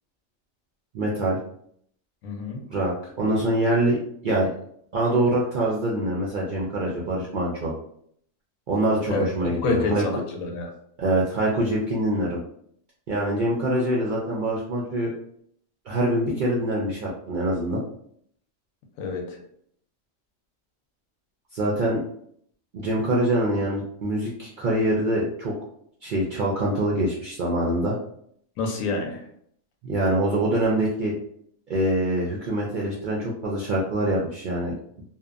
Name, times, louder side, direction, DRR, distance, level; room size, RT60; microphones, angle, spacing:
voice 1, 0.9-1.4 2.7-4.0 4.2-4.5 4.9-7.7 8.7-10.0 11.0-12.4 13.1-15.1 15.9-17.8 21.5-22.0 22.7-25.5 26.0-28.0 29.8-31.1 31.7-34.7, right 1 dB, 75° right, -4 dB, 0.4 m, -24 dB
voice 2, 2.2-2.6 9.1-9.3 9.6-10.7 19.0-19.4 28.6-29.2, left 3 dB, 90° left, 2 dB, 1.0 m, -27 dB
2.7 x 2.0 x 2.4 m, 0.66 s
omnidirectional pair, 1.4 m